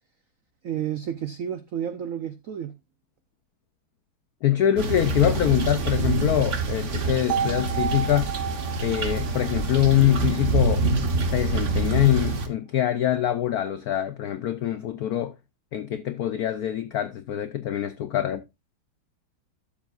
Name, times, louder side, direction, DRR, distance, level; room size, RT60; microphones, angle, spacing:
voice 1, 0.6-2.7, right 9 dB, 90° right, 0.7 m, -31 dB
voice 2, 4.4-8.3 8.8-10.8 11.3-15.3 15.7-18.4, left 12 dB, 85° left, 0.8 m, -24 dB
sound 1, 4.8-12.5, right 3 dB, 45° right, 1.2 m, -26 dB
sound 2, 7.3-11.3, right 8 dB, 70° right, 1.8 m, -32 dB
12.5 x 7.5 x 2.4 m
omnidirectional pair, 2.3 m